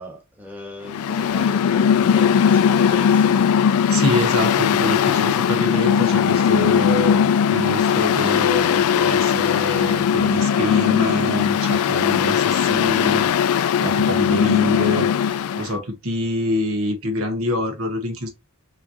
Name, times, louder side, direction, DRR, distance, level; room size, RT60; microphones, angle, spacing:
voice 1, 0.0-3.4, equal, 10° right, 1.4 m, -38 dB
Mechanical fan, 0.8-15.7, left 8 dB, 75° left, 0.3 m, -19 dB
voice 2, 3.9-18.3, left 1 dB, 70° right, 1.4 m, -26 dB
5.6 x 3.1 x 2.9 m
head